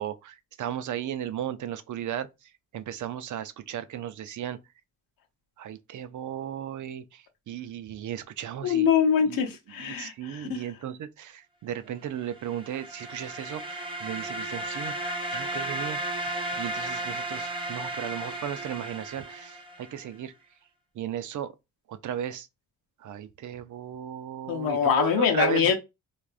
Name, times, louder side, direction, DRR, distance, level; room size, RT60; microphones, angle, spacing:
voice 1, 0.0-2.3 2.7-4.6 5.6-8.9 9.3-9.4 9.8-14.9 15.3-16.0 16.5-20.3 21.0-21.5 21.9-22.5 23.0-25.7, right 10 dB, 60° right, 0.5 m, -35 dB
voice 2, 8.6-10.6 24.5-25.7, left 8 dB, 80° left, 0.8 m, -24 dB
sound 1, 12.3-20.0, right 1 dB, 15° right, 0.8 m, -34 dB
3.4 x 2.4 x 2.4 m
cardioid pair, 75°, 34 cm